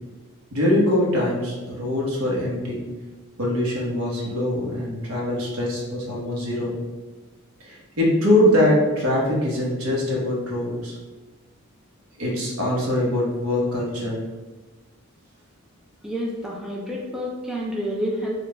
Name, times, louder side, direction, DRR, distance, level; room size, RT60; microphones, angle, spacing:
voice 1, 0.5-2.8 3.4-6.7 7.6-10.9 12.2-14.2, left 1 dB, 85° right, -4 dB, 1.1 m, -23 dB
voice 2, 16.0-18.3, equal, ahead, -4 dB, 0.5 m, -29 dB
4.1 x 2.4 x 3.3 m, 1.3 s
head